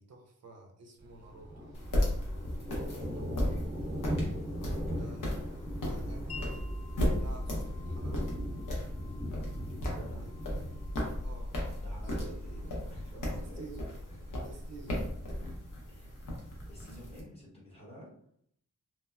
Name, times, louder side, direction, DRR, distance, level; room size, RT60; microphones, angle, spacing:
voice 1, 0.0-1.7 5.0-5.4 5.8-6.6 6.9-8.2 10.2-10.3 11.2-11.8 12.2-12.3 12.6-12.7 13.3-13.8 14.4-15.0, right 3 dB, 55° right, 2 dB, 0.4 m, -51 dB
Thunder, 1.0-16.6, equal, 35° right, 0.8 m, -41 dB
sound 1, 1.7-17.2, left 1 dB, 85° left, 0.8 m, -35 dB
voice 2, 3.1-3.7 4.7-5.2 9.8-10.3 11.8-13.7 14.1-14.4 15.9-16.2 16.7-18.1, equal, 20° left, -5 dB, 0.9 m, -49 dB
Wind chime, 6.3-13.9, left 5 dB, 50° left, 0.4 m, -54 dB
2.9 x 2.1 x 2.3 m, 0.66 s
wide cardioid pair, 120°, 31 cm